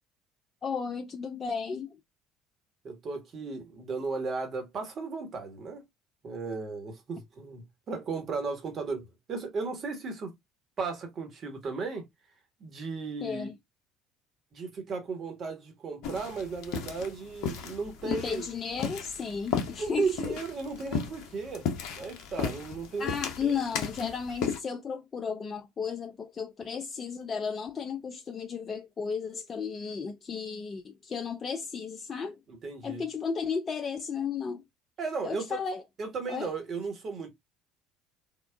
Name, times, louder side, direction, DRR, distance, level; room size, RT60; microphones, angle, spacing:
voice 1, 0.6-1.9 13.2-13.5 18.0-20.4 23.0-32.4 32.8-34.6 35.2-35.8 36.3-36.5, left 6 dB, 40° left, 0.4 m, -34 dB
voice 2, 2.8-5.8 6.2-10.3 10.8-12.0 12.6-13.5 14.5-18.5 19.8-21.7 21.9-23.1 23.4-23.6 32.5-33.0 35.0-35.6 36.0-37.3, right 4 dB, 50° right, 1.2 m, -35 dB
sound 1, 16.0-24.6, left 6 dB, 65° left, 0.7 m, -35 dB
3.7 x 2.3 x 2.2 m
hypercardioid pair, 60°, 0 cm